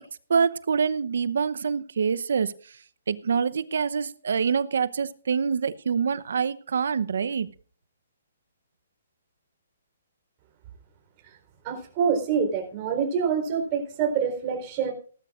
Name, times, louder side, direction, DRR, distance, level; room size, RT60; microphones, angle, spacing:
voice 1, 0.3-2.5 3.1-7.5, right 6 dB, 70° right, 16 dB, 0.8 m, -25 dB
voice 2, 11.6-14.9, right 6 dB, 35° right, 2 dB, 4.2 m, -26 dB
18.0 x 12.5 x 2.5 m, 0.42 s
hypercardioid pair, 140°, 0 cm